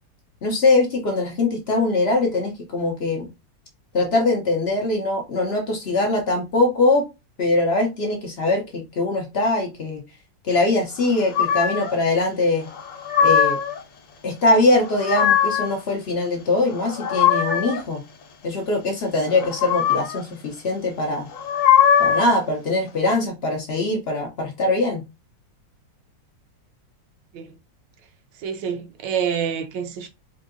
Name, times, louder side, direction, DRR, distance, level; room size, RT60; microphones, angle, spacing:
voice 1, 0.4-3.2 3.9-7.0 7.4-10.0 10.4-12.7 13.2-13.6 14.2-18.0 18.4-21.3 22.0-25.0, left 2 dB, 80° left, 0.5 m, -22 dB
sound 1, 11.3-11.9 12.8-13.8 14.7-15.7 16.7-17.8 19.3-20.2 21.3-22.4, left 8 dB, 60° left, 1.4 m, -20 dB
voice 2, 28.4-30.1, right 7 dB, 75° right, 1.1 m, -27 dB
4.3 x 2.7 x 2.5 m
omnidirectional pair, 2.1 m